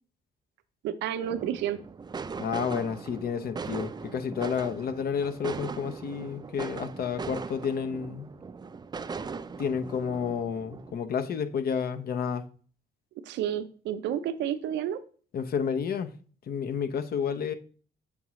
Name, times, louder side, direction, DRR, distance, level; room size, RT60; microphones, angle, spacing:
voice 1, 0.8-1.8 13.2-15.0, right 10 dB, 85° right, 0.6 m, -30 dB
sound 1, 1.2-10.9, right 5 dB, 25° right, 0.4 m, -39 dB
voice 2, 2.4-8.3 9.6-12.5 15.3-16.1 16.5-17.5, left 7 dB, 60° left, 0.7 m, -30 dB
7.0 x 4.8 x 3.0 m
cardioid pair, 75°, 18 cm